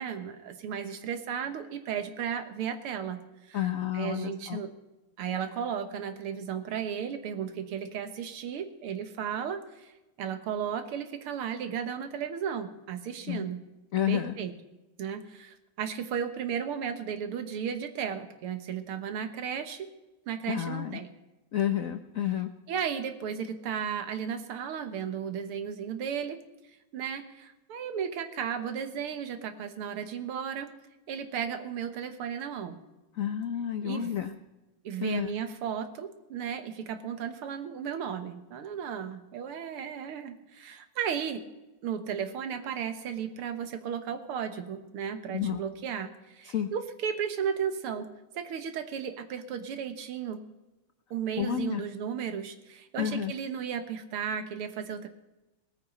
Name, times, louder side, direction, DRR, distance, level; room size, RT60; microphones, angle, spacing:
voice 1, 0.0-4.7 5.2-9.9 10.2-13.6 14.1-14.5 15.0-19.9 20.3-21.1 22.7-26.4 26.9-30.7 31.1-32.8 33.8-34.1 34.8-41.4 41.8-48.1 48.3-50.5 51.1-55.1, right 7 dB, 85° right, 8 dB, 2.1 m, -34 dB
voice 2, 3.5-4.6 13.3-13.5 13.9-14.3 20.5-21.0 21.5-22.5 33.2-34.3 35.0-35.3 45.3-45.6 46.5-46.7 51.4-51.8 53.0-53.3, left 10 dB, 80° left, 8 dB, 0.7 m, -30 dB
19.0 x 8.9 x 5.4 m, 1.1 s
omnidirectional pair, 2.4 m